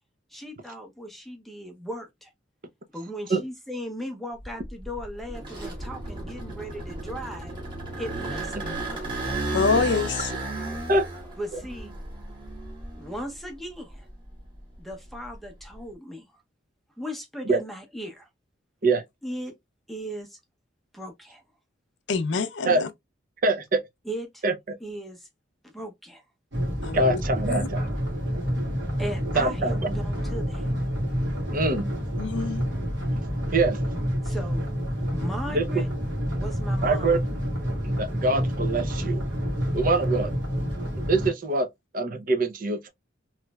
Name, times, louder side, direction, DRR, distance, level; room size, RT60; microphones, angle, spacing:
voice 1, 0.3-2.1 2.9-7.5 8.0-9.4 11.4-11.9 13.0-14.1 14.8-16.3 17.0-18.3 19.2-19.5 19.9-20.4 20.9-21.4 24.1-24.4 24.8-25.3 25.6-26.2 29.0-30.7 34.2-34.7 35.1-35.9 36.3-37.2, equal, ahead, 0.6 m, -37 dB
sound 1, 4.4-13.4 13.9-15.7, right 2 dB, 25° right, 1.2 m, -34 dB
voice 2, 9.5-10.3 22.1-22.9 26.8-27.2 27.5-27.7 32.2-32.6, left 5 dB, 65° left, 0.5 m, -26 dB
voice 3, 23.4-23.8 24.4-24.8 26.9-27.9 29.3-30.0 31.5-31.9 33.5-33.8 35.5-35.8 36.8-37.2 37.8-39.2 39.7-40.3 41.1-41.7 41.9-42.9, right 2 dB, 45° right, 0.6 m, -24 dB
sound 2, 26.5-41.3, equal, 65° right, 1.6 m, -28 dB
3.1 x 3.0 x 2.2 m
head